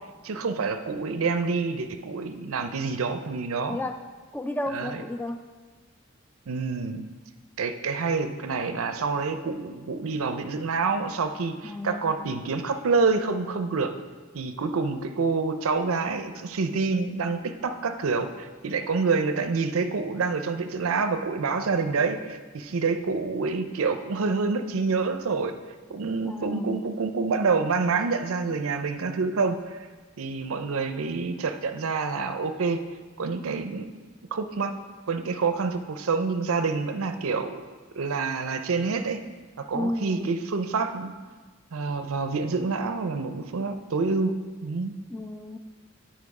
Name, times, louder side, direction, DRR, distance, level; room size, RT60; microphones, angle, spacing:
voice 1, 0.2-3.8 4.7-5.0 6.5-7.0 7.6-13.9 14.3-25.5 25.9-29.8 30.2-32.8 33.2-33.9 34.3-34.8 35.1-37.5 38.0-39.2 39.6-41.1 41.7-44.4 44.6-44.9, right 4 dB, 70° right, 8 dB, 0.5 m, -27 dB
voice 2, 3.7-4.0 4.3-5.5 11.6-12.3 26.2-26.8 39.7-40.3 45.1-45.6, left 1 dB, 10° left, 7 dB, 0.3 m, -33 dB
9.2 x 4.5 x 4.8 m, 1.4 s
head